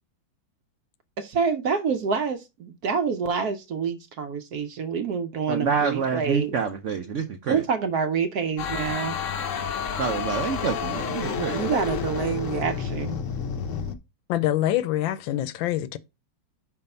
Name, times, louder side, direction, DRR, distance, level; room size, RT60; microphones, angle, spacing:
voice 1, 1.2-6.5 7.5-9.2 11.5-13.2, right 6 dB, 65° right, 1.0 m, -27 dB
voice 2, 5.5-7.6 10.0-11.6, right 6 dB, 90° right, 0.6 m, -27 dB
sound 1, 8.6-13.9, left 7 dB, 60° left, 0.8 m, -30 dB
voice 3, 14.3-16.0, left 13 dB, 75° left, 1.3 m, -25 dB
5.5 x 4.6 x 5.4 m
omnidirectional pair, 2.2 m